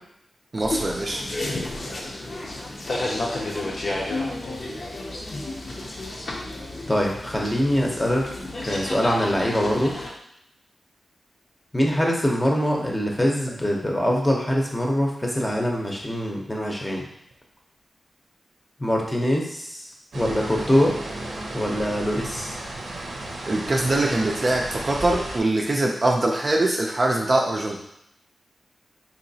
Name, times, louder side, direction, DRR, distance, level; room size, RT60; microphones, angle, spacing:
voice 1, 0.5-1.2 23.5-27.8, right 2 dB, 35° right, 0 dB, 0.4 m, -23 dB
sound 1, 0.6-10.1, left 2 dB, 55° left, 0.6 m, -31 dB
voice 2, 6.9-8.3 8.6-9.9 11.7-17.0 18.8-19.8 20.1-20.9 21.5-22.5, equal, 15° left, -1 dB, 0.7 m, -23 dB
sound 2, 20.1-25.4, right 2 dB, 75° right, 0.7 m, -34 dB
3.9 x 2.8 x 2.7 m, 0.76 s
wide cardioid pair, 100°, 0 cm